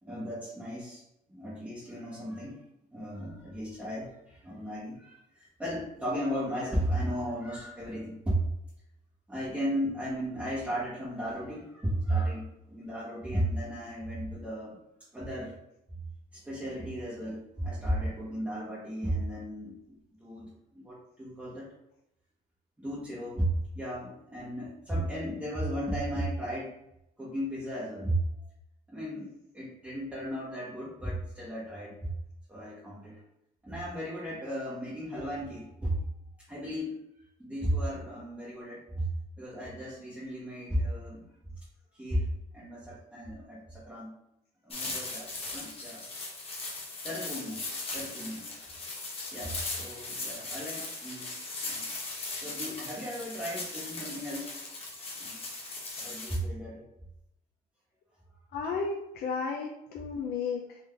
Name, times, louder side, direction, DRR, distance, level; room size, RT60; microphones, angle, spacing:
voice 1, 0.0-2.6 2.9-8.5 9.3-14.8 15.1-15.6 16.3-21.7 22.8-26.8 27.2-28.2 28.9-32.0 32.5-33.2 33.6-36.0 36.5-37.0 37.4-39.1 39.4-41.3 41.9-44.1 44.6-46.0 47.0-47.6 47.9-48.5 49.3-51.3 51.6-51.9 52.4-54.5 55.2-55.4 56.0-56.8, right 1 dB, 10° right, -8 dB, 0.9 m, -35 dB
sound 1, 44.7-56.4, left 3 dB, 35° left, 1.1 m, -38 dB
voice 2, 58.5-60.8, left 5 dB, 70° left, 0 dB, 0.5 m, -33 dB
3.8 x 2.6 x 3.3 m, 0.81 s
cardioid pair, 110°, 17 cm